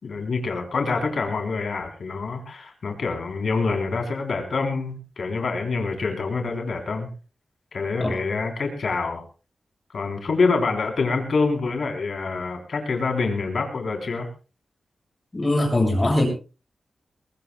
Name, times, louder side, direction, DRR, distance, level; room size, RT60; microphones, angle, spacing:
voice 1, 0.0-7.1 7.7-9.2 9.9-14.3, left 4 dB, 65° left, 3 dB, 3.8 m, -26 dB
voice 2, 15.3-16.3, left 1 dB, 20° left, 1 dB, 7.6 m, -21 dB
22.0 x 20.5 x 2.4 m, 0.34 s
wide cardioid pair, 150°, 0 cm